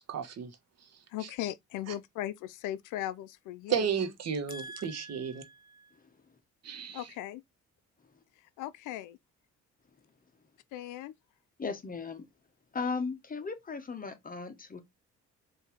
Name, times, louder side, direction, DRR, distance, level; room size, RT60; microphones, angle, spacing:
voice 1, 0.1-0.9 1.2-1.3 1.9-2.0 3.7-5.4 6.6-7.1, right 7 dB, 60° right, 1.1 m, -33 dB
voice 2, 1.1-3.9 6.9-7.4 8.6-9.2 10.7-11.1, left 13 dB, 85° left, 0.5 m, -38 dB
voice 3, 4.5-6.0 11.6-12.2 12.7-14.8, left 4 dB, 30° left, 1.1 m, -38 dB
4.5 x 2.7 x 3.5 m
cardioid pair, 90°, 30 cm